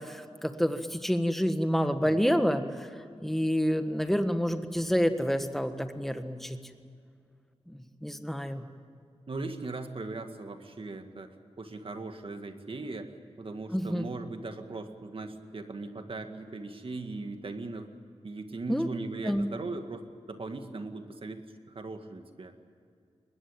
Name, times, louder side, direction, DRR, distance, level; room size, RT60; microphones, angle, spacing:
voice 1, 0.0-6.6 7.7-8.6 13.7-14.0 18.7-18.9 19.2-19.5, equal, 5° left, 8 dB, 1.6 m, -28 dB
voice 2, 9.3-17.9 18.2-21.4 21.7-22.6, right 3 dB, 55° right, 6 dB, 2.1 m, -39 dB
22.0 x 20.5 x 9.0 m, 2.4 s
wide cardioid pair, 80°, 11 cm